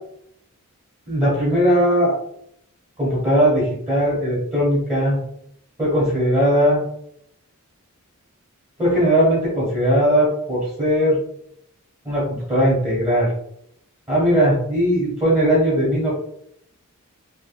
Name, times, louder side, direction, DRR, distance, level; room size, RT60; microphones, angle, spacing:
voice 1, 1.1-2.1 3.0-5.2 5.8-6.8 8.8-11.2 12.0-13.3 14.1-16.1, equal, 15° right, -9 dB, 1.1 m, -19 dB
2.9 x 2.4 x 2.2 m, 0.72 s
head